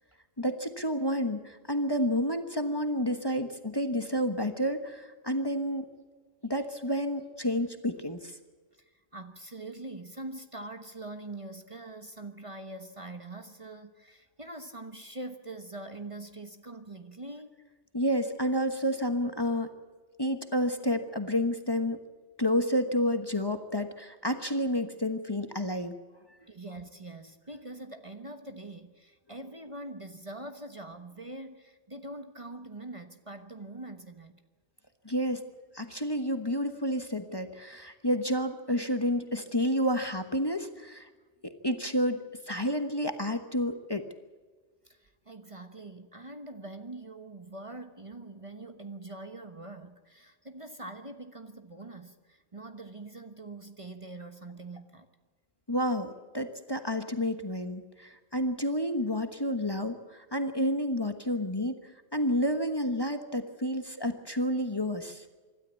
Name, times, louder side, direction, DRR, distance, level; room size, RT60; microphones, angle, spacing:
voice 1, 0.4-5.9 6.4-8.4 17.9-19.7 20.2-22.0 22.4-25.9 35.0-35.4 35.7-41.1 41.4-42.2 42.5-44.1 55.7-65.2, equal, 20° left, 7 dB, 1.2 m, -30 dB
voice 2, 8.7-17.5 26.5-34.4 44.8-55.1, right 2 dB, 30° right, 7 dB, 1.2 m, -43 dB
25.5 x 13.0 x 8.3 m, 1.4 s
omnidirectional pair, 1.2 m